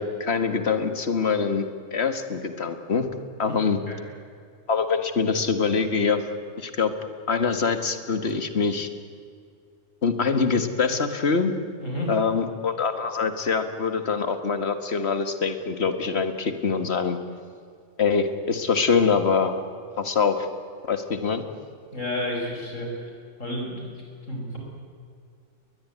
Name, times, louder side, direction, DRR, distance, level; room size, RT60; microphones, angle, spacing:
voice 1, 0.0-1.7 1.9-3.1 3.4-3.8 4.7-6.2 6.6-6.9 7.3-8.9 10.0-11.5 12.1-17.2 18.0-19.5 20.0-20.5 20.9-21.4, left 5 dB, 60° left, 9 dB, 2.0 m, -24 dB
voice 2, 11.8-12.1 21.9-23.1 23.4-23.8 24.3-24.6, left 1 dB, 90° left, 0 dB, 6.4 m, -31 dB
21.0 x 21.0 x 9.5 m, 2.3 s
omnidirectional pair, 1.3 m